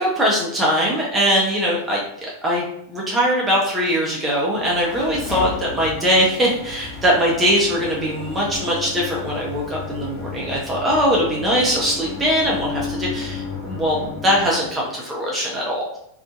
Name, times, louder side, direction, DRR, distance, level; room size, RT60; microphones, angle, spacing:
voice 1, 0.0-14.0 14.2-16.0, equal, 15° right, -3 dB, 0.6 m, -21 dB
sound 1, 4.5-14.8, left 5 dB, 40° left, 1.0 m, -33 dB
2.5 x 2.1 x 2.4 m, 0.73 s
figure-of-eight pair, 90°, 0 cm